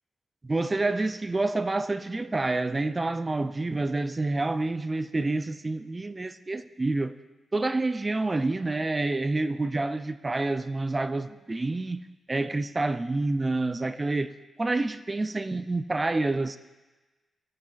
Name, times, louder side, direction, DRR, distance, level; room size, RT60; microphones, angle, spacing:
voice 1, 0.4-7.1 7.5-12.0 12.3-16.6, right 2 dB, 25° right, 0.4 m, -28 dB
14.5 x 8.5 x 2.5 m
cardioid pair, 95°, 0 cm